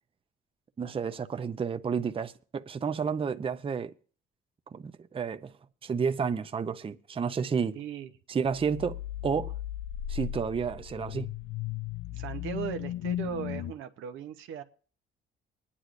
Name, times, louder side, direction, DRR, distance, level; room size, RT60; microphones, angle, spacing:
voice 1, 0.8-3.9 4.7-5.5 5.8-7.8 8.3-9.5 10.1-11.3, right 6 dB, 30° right, 0.5 m, -31 dB
voice 2, 7.7-8.1 12.1-14.6, right 8 dB, 85° right, 0.8 m, -38 dB
sound 1, 8.5-13.7, left 12 dB, 70° left, 0.5 m, -36 dB
23.0 x 9.8 x 2.5 m
cardioid pair, 90°, 20 cm